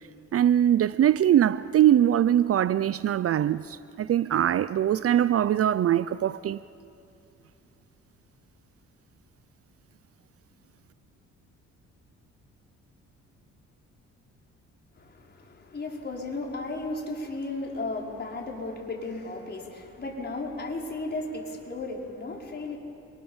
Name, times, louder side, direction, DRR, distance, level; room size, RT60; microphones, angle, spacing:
voice 1, 0.3-6.6, right 11 dB, 50° right, 0.6 m, -22 dB
voice 2, 15.0-22.8, left 2 dB, 35° left, 5.4 m, -35 dB
28.5 x 24.5 x 7.3 m
cardioid pair, 90°, 30 cm